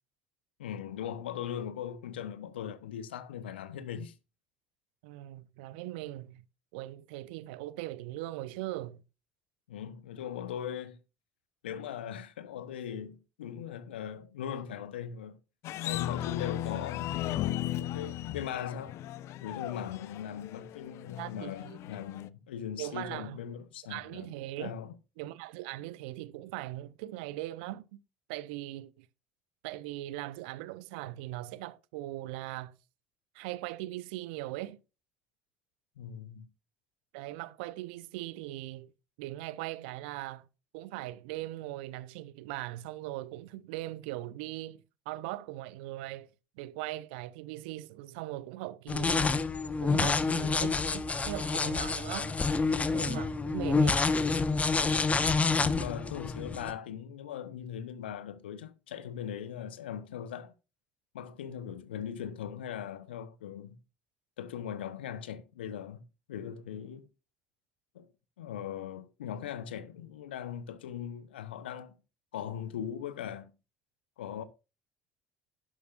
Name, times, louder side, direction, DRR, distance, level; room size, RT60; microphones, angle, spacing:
voice 1, 0.6-4.2 9.7-11.0 11.6-15.4 15.8-19.0 19.4-24.3 24.6-24.9 36.0-36.5 55.6-60.5 61.1-63.8 64.4-66.0 66.3-67.1 67.9-68.1 68.4-71.9 72.3-73.5 74.2-74.4, left 9 dB, 75° left, 1.0 m, -40 dB
voice 2, 5.0-6.4 6.7-9.0 21.2-21.8 22.8-23.4 23.9-24.7 25.2-28.0 28.3-29.1 29.6-32.8 33.3-34.8 37.1-38.9 39.2-40.4 40.7-46.3 46.6-49.4 49.8-52.3 52.9-54.0, right 16 dB, 70° right, 0.7 m, -40 dB
sound 1, 15.6-22.3, left 13 dB, 55° left, 0.6 m, -36 dB
sound 2, 48.9-56.7, left 4 dB, 25° left, 1.2 m, -28 dB
11.5 x 11.0 x 2.5 m
figure-of-eight pair, 60°, 6 cm